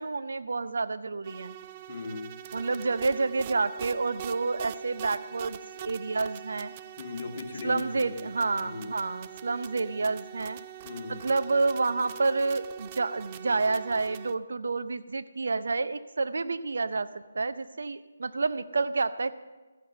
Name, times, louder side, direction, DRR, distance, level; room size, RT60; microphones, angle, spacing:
voice 1, 0.0-1.5 2.5-6.7 7.6-10.6 11.1-17.1 17.3-19.3, right 3 dB, 70° right, 13 dB, 0.7 m, -29 dB
sound 1, 1.2-14.3, right 11 dB, 30° right, 0.4 m, -44 dB
voice 2, 1.9-2.4 7.0-8.3 8.6-8.9 10.8-11.3, left 3 dB, 45° left, 1 dB, 2.0 m, -38 dB
14.0 x 9.5 x 6.8 m, 1.2 s
figure-of-eight pair, 160°, 0 cm